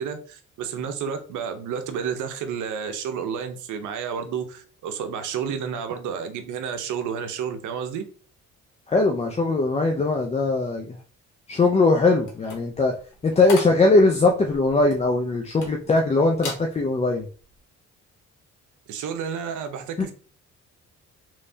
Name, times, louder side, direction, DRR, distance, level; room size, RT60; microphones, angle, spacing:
voice 1, 0.0-8.0 18.9-20.1, right 7 dB, 80° right, 8 dB, 0.7 m, -31 dB
voice 2, 8.9-11.0 11.5-12.9 13.2-17.3 20.0-20.1, left 3 dB, 20° left, 2 dB, 0.4 m, -20 dB
sound 1, 12.2-16.0 16.3-16.7 17.1-17.4, left 4 dB, 85° left, 1.1 m, -37 dB
3.3 x 3.1 x 2.6 m, 0.39 s
cardioid pair, 90°, 30 cm